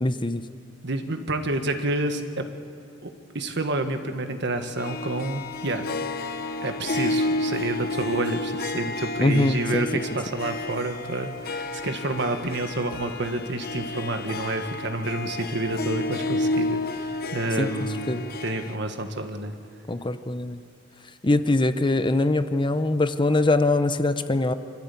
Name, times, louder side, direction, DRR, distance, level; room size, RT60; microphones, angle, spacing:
voice 1, 0.0-0.4 9.2-9.8 17.6-17.7 18.1-18.3 19.9-20.6 21.2-24.5, left 2 dB, 25° left, 10 dB, 0.8 m, -22 dB
voice 2, 0.8-2.5 3.0-3.1 3.4-5.8 6.6-19.6, right 2 dB, 65° right, 6 dB, 1.6 m, -29 dB
Harp, 4.8-18.8, left 2 dB, 50° left, 0.9 m, -31 dB
26.0 x 14.5 x 8.5 m, 2.6 s
head